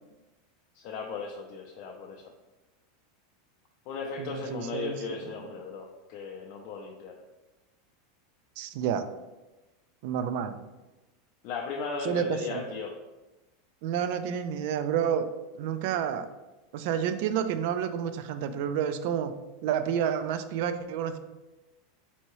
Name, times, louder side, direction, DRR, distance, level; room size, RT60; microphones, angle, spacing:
voice 1, 0.7-2.3 3.9-7.2 11.4-12.9, left 5 dB, 55° left, 0 dB, 0.4 m, -36 dB
voice 2, 4.2-5.5 8.6-9.0 10.0-10.5 12.0-12.6 13.8-15.3 15.5-16.3 16.7-19.3 19.6-21.2, right 8 dB, 60° right, 10 dB, 0.3 m, -30 dB
4.4 x 2.8 x 3.0 m, 1.1 s
supercardioid pair, 140°, 0 cm